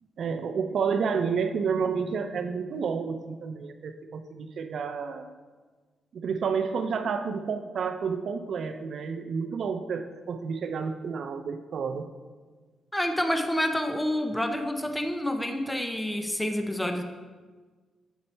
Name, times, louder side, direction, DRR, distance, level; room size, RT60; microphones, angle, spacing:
voice 1, 0.2-5.3 6.1-12.0, right 6 dB, 55° right, 7 dB, 0.5 m, -30 dB
voice 2, 12.9-17.0, left 1 dB, 5° left, 5 dB, 0.5 m, -28 dB
8.1 x 5.4 x 4.3 m, 1.4 s
wide cardioid pair, 150°, 0 cm